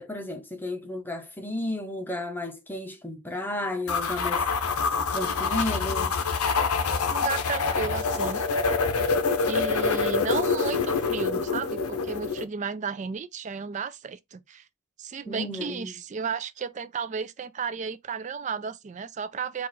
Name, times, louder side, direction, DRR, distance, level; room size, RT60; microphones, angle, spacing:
voice 1, 0.0-4.5 5.1-6.2 15.3-15.9, left 1 dB, 10° left, 0.7 m, -33 dB
sound 1, 3.9-12.4, left 4 dB, 85° left, 0.7 m, -26 dB
voice 2, 7.1-8.5 9.5-14.7 15.0-19.7, right 5 dB, 35° right, 0.3 m, -33 dB
4.6 x 2.4 x 4.0 m
head